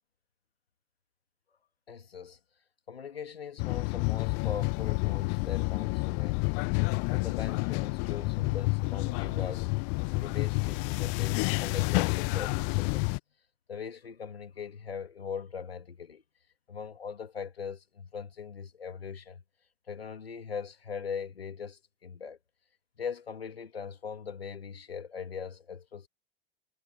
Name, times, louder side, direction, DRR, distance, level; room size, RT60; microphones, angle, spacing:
voice 1, 1.9-2.4 2.9-9.7 10.1-13.0 13.7-16.2 16.7-19.4 19.9-22.4 23.0-26.1, left 6 dB, 80° left, 2.9 m, -40 dB
sound 1, 3.6-13.2, left 40 dB or more, 40° left, 0.7 m, -29 dB
figure-of-eight pair, 90°, 30 cm